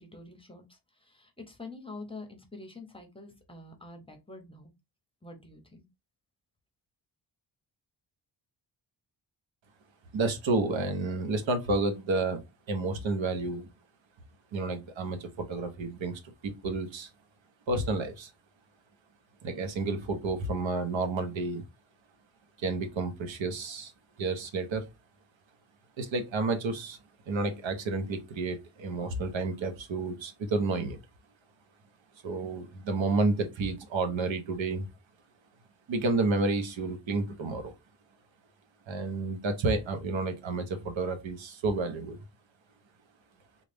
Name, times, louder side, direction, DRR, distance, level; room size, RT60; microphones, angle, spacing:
voice 1, 0.0-4.7 5.2-5.8, left 3 dB, 10° left, 0.7 m, -46 dB
voice 2, 10.1-12.4 12.7-13.7 14.5-17.1 17.7-18.3 19.4-21.6 22.6-23.9 24.2-24.9 26.0-27.0 27.3-31.0 32.2-34.9 35.9-37.7 38.9-42.2, right 3 dB, 80° right, 0.9 m, -30 dB
3.8 x 2.4 x 3.4 m
wide cardioid pair, 145°, 45 cm